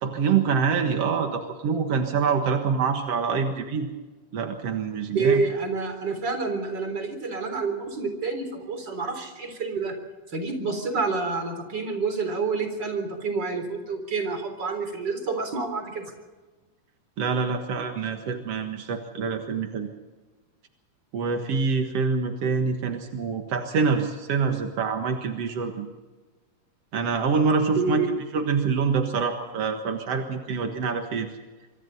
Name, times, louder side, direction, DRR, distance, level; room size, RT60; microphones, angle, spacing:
voice 1, 0.0-3.9 4.3-5.4 17.2-19.9 21.1-25.9 26.9-28.0 28.3-31.3, right 5 dB, 70° right, 4 dB, 1.4 m, -25 dB
voice 2, 5.1-10.0 10.3-16.0 27.8-28.2, right 4 dB, 25° right, 6 dB, 3.9 m, -28 dB
25.5 x 25.5 x 4.2 m, 1.3 s
omnidirectional pair, 5.2 m